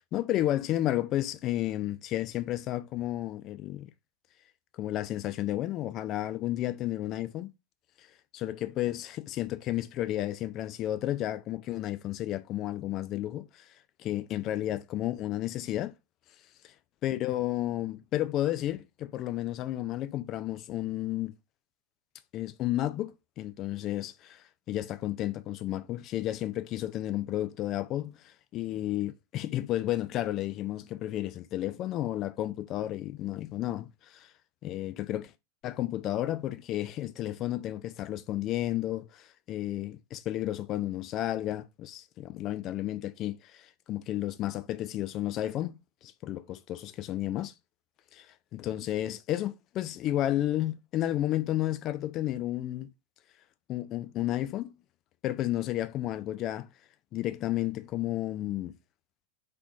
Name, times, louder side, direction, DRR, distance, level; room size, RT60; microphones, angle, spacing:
voice 1, 0.0-3.9 4.7-7.5 8.3-13.6 14.0-15.9 17.0-21.3 22.3-24.4 24.7-34.3 34.6-35.3 35.6-45.8 46.0-47.5 48.1-48.3 48.5-52.9 53.7-54.7 55.2-56.7 57.1-58.7, left 14 dB, 35° left, 0.3 m, -32 dB
3.3 x 2.9 x 2.5 m
figure-of-eight pair, 90°, 0 cm